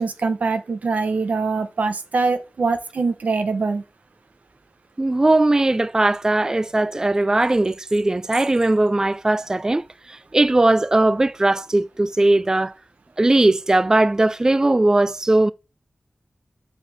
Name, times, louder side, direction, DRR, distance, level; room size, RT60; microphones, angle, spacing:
voice 1, 0.0-3.8, right 4 dB, 80° right, 1.0 m, -23 dB
voice 2, 5.0-12.7 13.2-15.5, right 2 dB, 25° right, 0.3 m, -19 dB
6.1 x 4.8 x 6.2 m
cardioid pair, 55°, 3 cm